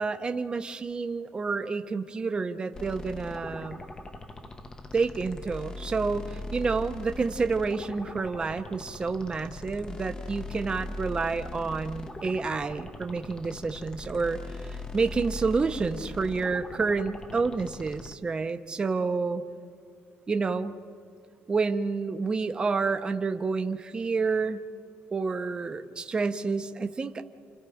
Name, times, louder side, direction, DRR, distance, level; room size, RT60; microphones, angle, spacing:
voice 1, 0.0-3.8 4.9-19.4 20.3-20.7 21.5-24.6 25.1-27.2, right 4 dB, 20° right, 8 dB, 0.8 m, -29 dB
sound 1, 2.7-18.1, left 2 dB, 15° left, 0.8 m, -40 dB
29.5 x 28.5 x 5.0 m, 2.3 s
cardioid pair, 175°, 5 cm